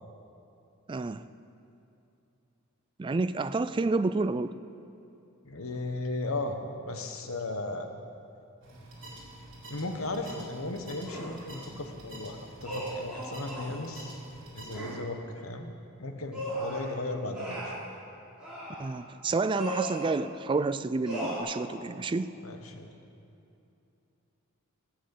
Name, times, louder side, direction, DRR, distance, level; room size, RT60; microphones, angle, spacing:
voice 1, 0.9-1.2 3.0-4.6 18.8-22.3, right 3 dB, 20° right, 13 dB, 0.3 m, -29 dB
voice 2, 5.4-7.9 9.7-14.2 14.5-15.7 16.0-17.8 22.4-22.9, left 2 dB, 70° left, 5 dB, 1.2 m, -36 dB
sound 1, 8.6-15.0, right 1 dB, 60° right, 3.4 m, -47 dB
sound 2, 11.1-11.4 12.6-13.8 14.7-15.0 16.3-16.9 17.3-17.8 18.4-18.9 19.5-20.1 21.0-21.4, right 1 dB, 5° right, 4.0 m, -36 dB
16.5 x 6.3 x 8.4 m, 2.7 s
head